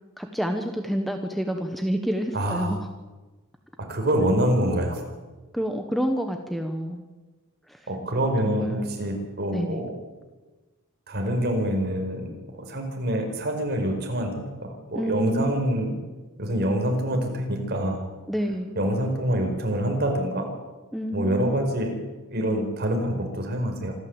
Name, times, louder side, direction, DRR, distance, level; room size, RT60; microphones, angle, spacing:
voice 1, 0.2-2.9 5.5-7.0 7.7-7.8 8.5-9.0 9.5-9.8 14.9-15.5 18.3-18.8 20.9-21.6, equal, ahead, 5 dB, 1.2 m, -28 dB
voice 2, 2.3-2.7 3.9-5.0 7.9-9.9 11.1-12.3 12.6-16.0 16.4-18.1 18.8-20.5 21.1-22.0 22.3-23.9, right 1 dB, 45° right, 3 dB, 4.8 m, -26 dB
26.0 x 12.5 x 8.0 m, 1.2 s
head